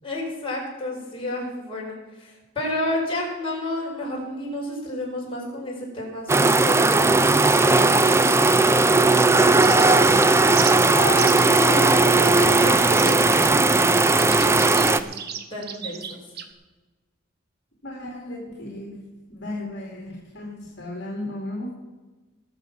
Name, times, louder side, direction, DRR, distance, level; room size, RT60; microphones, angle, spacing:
voice 1, 0.0-15.1 15.5-16.3, left 1 dB, 25° left, -4 dB, 4.8 m, -31 dB
sound 1, 6.3-15.0, right 3 dB, 15° right, 0.4 m, -17 dB
sound 2, 9.6-10.1 10.6-10.7 11.2-11.5 12.2-12.4 13.0-16.5, right 8 dB, 50° right, 1.0 m, -34 dB
voice 2, 17.8-19.0 19.3-21.7, left 1 dB, 55° left, -1 dB, 2.4 m, -35 dB
20.0 x 6.9 x 5.8 m, 1.2 s
head